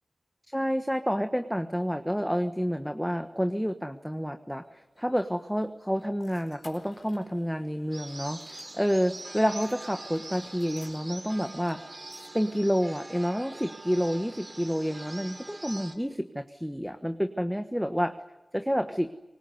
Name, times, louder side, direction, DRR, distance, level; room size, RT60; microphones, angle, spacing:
voice 1, 0.5-11.8 12.3-18.2 18.5-19.1, equal, ahead, 9 dB, 1.2 m, -29 dB
sound 1, 4.5-9.3 9.6-12.7, left 3 dB, 60° left, 4.2 m, -59 dB
sound 2, 7.9-16.0, right 2 dB, 35° right, 3.1 m, -43 dB
25.0 x 19.5 x 9.6 m, 1.1 s
wide cardioid pair, 65°, 0 cm